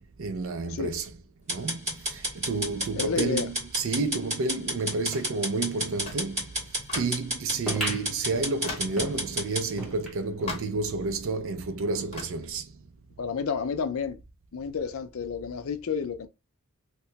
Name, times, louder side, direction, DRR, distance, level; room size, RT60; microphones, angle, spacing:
voice 1, 0.2-1.1 1.5-6.5 6.9-12.7, right 3 dB, 65° right, 0.5 m, -30 dB
sound 1, 1.5-9.7, equal, 30° right, 1.6 m, -31 dB
voice 2, 2.9-3.5 13.2-14.2 14.5-16.3, left 6 dB, 70° left, 0.5 m, -30 dB
sound 2, 5.1-5.4 6.0-6.3 6.9-7.3 7.9-8.0 8.6-9.0 10.5-10.8 12.1-12.4, left 3 dB, 25° left, 0.9 m, -38 dB
sound 3, 7.7-10.6 11.1-11.2 11.4-11.5 12.2-12.3, right 1 dB, ahead, 1.0 m, -37 dB
2.9 x 2.2 x 2.8 m
head